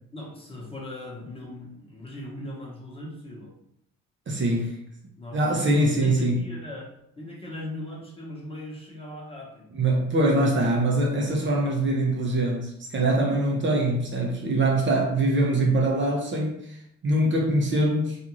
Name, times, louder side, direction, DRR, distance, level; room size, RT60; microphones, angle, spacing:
voice 1, 0.1-3.5 5.2-6.9 7.2-9.7, left 1 dB, 20° left, -3 dB, 0.9 m, -39 dB
voice 2, 4.3-4.8 5.3-6.4 9.8-16.8 17.0-18.2, right 1 dB, 40° right, -1 dB, 0.6 m, -23 dB
2.5 x 2.4 x 3.0 m, 0.75 s
cardioid pair, 90°, 30 cm